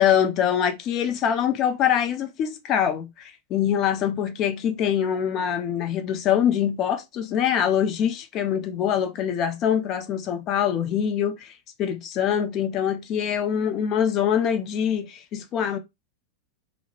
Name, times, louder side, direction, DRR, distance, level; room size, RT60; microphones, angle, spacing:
voice 1, 0.0-11.5 11.8-15.8, left 9 dB, 35° left, 0.5 m, -24 dB
2.1 x 2.0 x 2.9 m
figure-of-eight pair, 90°, 0 cm